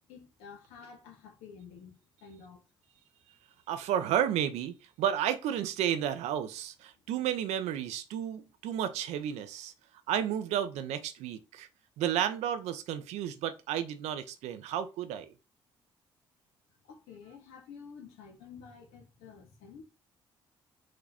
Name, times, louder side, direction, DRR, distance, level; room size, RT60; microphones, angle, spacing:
voice 1, 0.1-2.6 16.9-19.8, left 6 dB, 85° left, 0.8 m, -50 dB
voice 2, 3.7-9.7 10.1-11.7 12.0-15.3, right 10 dB, 75° right, 0.5 m, -32 dB
3.7 x 2.2 x 3.4 m
hypercardioid pair, 55°, 11 cm